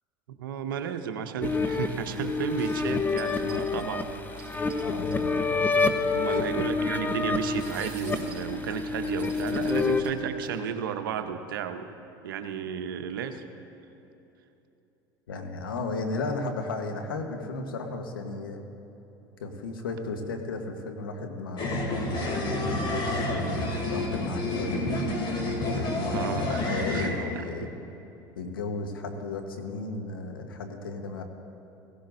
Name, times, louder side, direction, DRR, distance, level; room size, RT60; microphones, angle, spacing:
voice 1, 0.4-4.0 4.4-4.8 5.8-11.9 12.2-13.4 26.1-26.6 26.9-27.1 27.4-27.5, right 8 dB, 85° right, 8 dB, 0.8 m, -33 dB
sound 1, 1.4-10.0, left 4 dB, 15° left, 0.9 m, -28 dB
sound 2, 2.5-5.2 5.6-5.7 5.8-6.0 7.4-10.6, right 4 dB, 10° right, 3.1 m, -49 dB
voice 2, 4.8-5.7 6.4-6.5 15.3-18.7 19.4-22.0 22.7-24.9 25.6-27.7 28.4-31.2, left 3 dB, 90° left, 4 dB, 1.2 m, -35 dB
sound 3, 21.6-27.1, left 2 dB, 45° left, 2.6 m, -29 dB
17.0 x 16.0 x 2.6 m, 3.0 s
hypercardioid pair, 80°, 11 cm